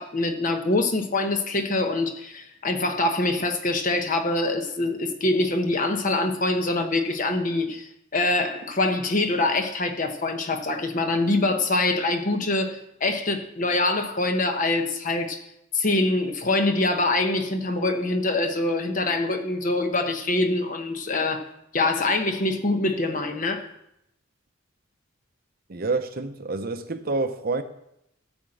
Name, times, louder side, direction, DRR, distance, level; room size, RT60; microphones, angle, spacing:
voice 1, 0.0-15.4 15.7-21.4 21.7-23.7, left 2 dB, 40° left, 1.0 m, -24 dB
voice 2, 25.7-27.6, right 3 dB, 45° right, 0.7 m, -28 dB
12.5 x 4.4 x 7.7 m
head